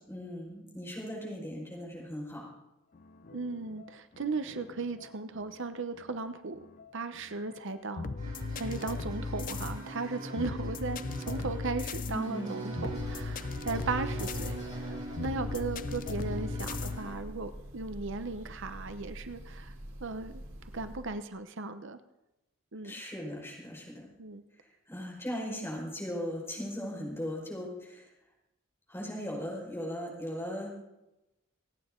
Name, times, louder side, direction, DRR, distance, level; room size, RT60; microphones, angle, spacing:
voice 1, 0.1-2.5 12.1-12.7 22.8-24.1 24.9-28.1 28.9-30.7, equal, 10° left, -2 dB, 5.1 m, -38 dB
sound 1, 2.9-17.2, left 4 dB, 40° left, 0.5 m, -39 dB
voice 2, 3.3-6.6 6.9-8.1 8.6-14.9 15.2-19.7 20.0-20.4 20.7-22.0 22.7-22.9 24.2-24.4, right 3 dB, 60° right, 10 dB, 0.9 m, -36 dB
sound 2, 8.2-17.1, right 2 dB, 35° right, 6.7 m, -42 dB
Breathing / Bird, 12.6-21.2, equal, 80° right, 3.4 m, -47 dB
28.0 x 9.4 x 3.8 m, 0.93 s
head